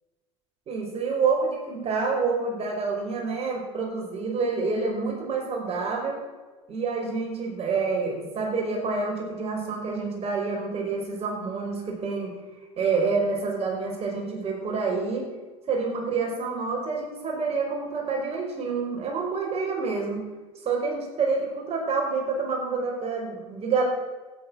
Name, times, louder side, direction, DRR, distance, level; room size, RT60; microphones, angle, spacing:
voice 1, 0.7-6.2 6.7-12.3 12.8-15.3 15.7-20.2 20.6-23.8, right 4 dB, 35° right, 0 dB, 5.3 m, -28 dB
13.5 x 10.5 x 7.6 m, 1.2 s
figure-of-eight pair, 70°, 17 cm